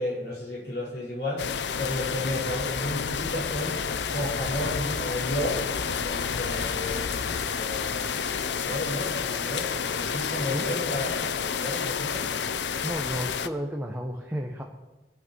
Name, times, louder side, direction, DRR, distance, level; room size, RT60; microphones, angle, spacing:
voice 1, 0.0-3.8 4.1-12.3, left 1 dB, 70° left, -3 dB, 5.1 m, -33 dB
sound 1, 1.4-13.5, left 6 dB, 90° left, 0.6 m, -30 dB
voice 2, 12.8-14.6, equal, 10° right, 0 dB, 1.0 m, -32 dB
23.0 x 8.8 x 4.6 m, 1.1 s
head